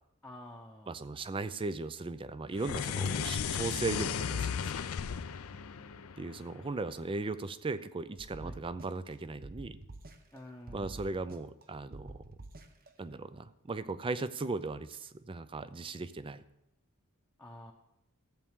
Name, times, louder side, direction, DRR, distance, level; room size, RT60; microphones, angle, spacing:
voice 1, 0.2-1.0 5.4-6.2 8.4-8.6 10.3-11.1 17.4-17.7, left 1 dB, 10° left, -2 dB, 0.8 m, -50 dB
voice 2, 0.9-4.7 6.2-9.8 10.7-12.2 13.0-16.4, right 3 dB, 25° right, 13 dB, 0.4 m, -37 dB
sound 1, 2.5-6.9, left 7 dB, 70° left, 0.5 m, -35 dB
sound 2, 8.2-9.1 9.4-10.4 10.7-11.6 11.9-12.9, right 2 dB, 40° right, 0.9 m, -48 dB
13.5 x 8.4 x 3.7 m, 0.87 s
head